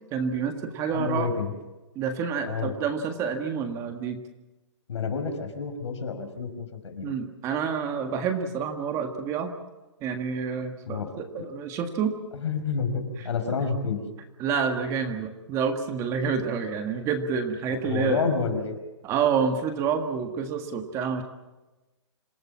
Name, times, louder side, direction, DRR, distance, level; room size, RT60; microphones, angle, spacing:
voice 1, 0.1-1.3 1.9-4.2 7.0-9.5 10.0-12.1 14.4-18.2 19.0-21.2, right 6 dB, 20° right, 6 dB, 1.7 m, -28 dB
voice 2, 0.9-1.5 2.5-2.7 4.9-7.1 10.9-11.1 12.3-14.0 17.7-18.8, left 5 dB, 75° left, 6 dB, 5.5 m, -29 dB
27.0 x 17.5 x 7.3 m, 1.1 s
hypercardioid pair, 160°, 15 cm